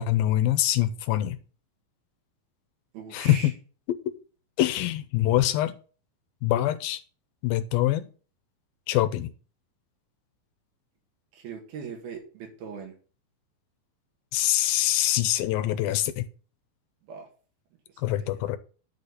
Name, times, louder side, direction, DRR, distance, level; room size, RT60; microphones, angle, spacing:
voice 1, 0.0-1.4 3.1-3.5 4.6-5.8 6.4-7.0 7.4-8.1 8.9-9.3 14.3-16.3 18.0-18.6, left 13 dB, 85° left, 2.4 m, -24 dB
voice 2, 2.9-3.5 11.3-13.0 17.1-17.3 18.0-18.3, right 6 dB, 85° right, 3.7 m, -40 dB
10.5 x 4.2 x 6.5 m
omnidirectional pair, 4.2 m